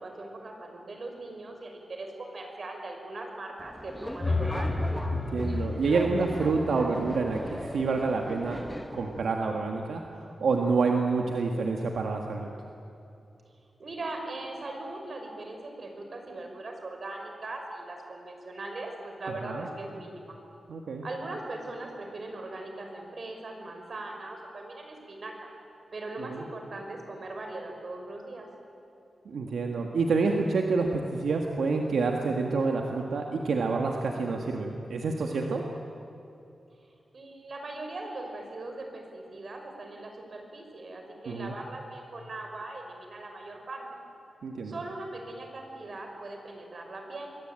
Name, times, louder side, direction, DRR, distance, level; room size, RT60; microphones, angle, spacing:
voice 1, 0.0-4.8 13.8-20.3 21.0-25.5 25.9-28.5 37.1-43.8 44.6-47.3, right 2 dB, 55° right, 3 dB, 5.8 m, -40 dB
Subway metro underground, 3.6-9.2, equal, 5° left, 1.5 m, -39 dB
sound 1, 4.0-8.1, left 2 dB, 35° left, 6.4 m, -32 dB
voice 2, 5.1-8.6 8.9-12.5 19.4-19.7 20.7-21.0 26.2-26.5 29.3-35.6 41.3-41.5 44.4-44.8, right 4 dB, 85° right, 2 dB, 1.9 m, -28 dB
28.5 x 22.0 x 9.1 m, 2.7 s
wide cardioid pair, 95°, 0 cm